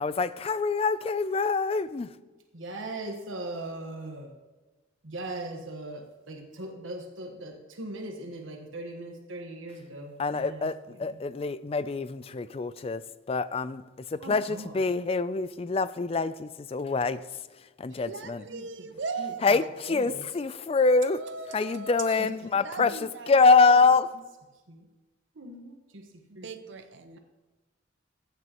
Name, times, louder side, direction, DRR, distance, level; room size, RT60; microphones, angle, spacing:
voice 1, 0.0-2.1 10.2-13.0 13.3-13.8 14.1-17.2 17.8-18.4 19.4-21.2 21.5-22.9 23.3-24.1, left 4 dB, 30° left, 15 dB, 0.3 m, -25 dB
voice 2, 2.5-4.3 5.0-11.2 14.2-14.7 17.9-18.0 18.5-18.7 19.2-19.6 19.9-20.2 22.1-22.3 22.8-22.9 24.7-24.9 25.3-26.1 26.3-26.5, right 2 dB, 80° right, 3 dB, 1.3 m, -40 dB
voice 3, 18.0-20.2 21.0-22.2 22.5-23.6 26.3-27.2, right 4 dB, 65° right, 8 dB, 0.6 m, -39 dB
15.5 x 9.3 x 3.0 m, 1.2 s
head